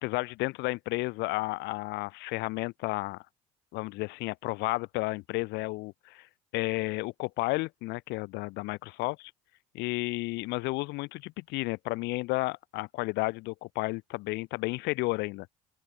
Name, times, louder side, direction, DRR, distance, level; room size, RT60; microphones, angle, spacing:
voice 1, 0.0-3.2 3.7-6.3 6.5-9.1 9.7-15.5, left 23 dB, 70° left, 1.7 m, -32 dB
open air
hypercardioid pair, 60°, 18 cm